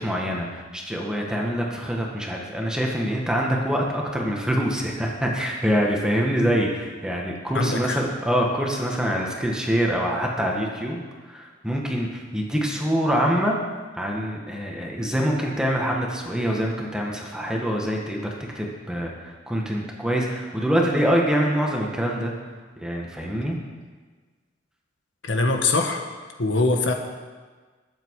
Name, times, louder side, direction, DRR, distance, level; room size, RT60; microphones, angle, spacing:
voice 1, 0.0-11.0 11.3-13.6 14.0-18.3 18.5-22.3 22.8-23.6, equal, 5° right, -1 dB, 1.8 m, -25 dB
voice 2, 7.5-8.0 25.3-26.0 26.4-26.9, left 3 dB, 70° left, 3 dB, 1.5 m, -22 dB
20.5 x 8.2 x 4.9 m, 1.4 s
head